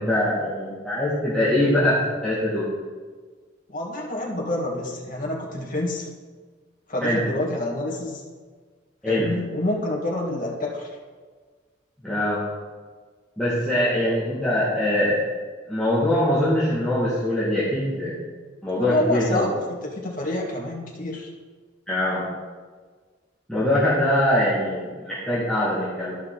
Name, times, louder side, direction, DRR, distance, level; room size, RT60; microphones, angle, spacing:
voice 1, 0.0-2.0 2.2-2.7 7.0-7.2 9.0-9.3 12.0-12.4 13.4-15.2 15.7-18.2 18.6-19.5 21.9-22.2 23.5-26.1, left 1 dB, 5° left, -11 dB, 2.1 m, -22 dB
voice 2, 3.7-6.1 6.9-8.2 9.0-10.9 18.8-21.3, left 1 dB, 50° left, -1 dB, 1.8 m, -28 dB
13.5 x 5.7 x 4.0 m, 1.5 s
head